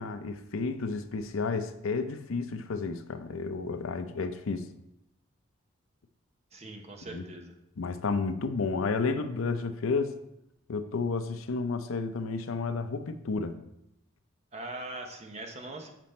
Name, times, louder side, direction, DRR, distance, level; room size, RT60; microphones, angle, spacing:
voice 1, 0.0-4.7 7.1-7.2 7.8-10.2 10.7-13.6, left 4 dB, 80° left, 10 dB, 0.6 m, -31 dB
voice 2, 6.5-7.5 14.5-15.9, right 2 dB, 30° right, 3 dB, 0.9 m, -41 dB
7.5 x 5.1 x 4.3 m, 0.83 s
head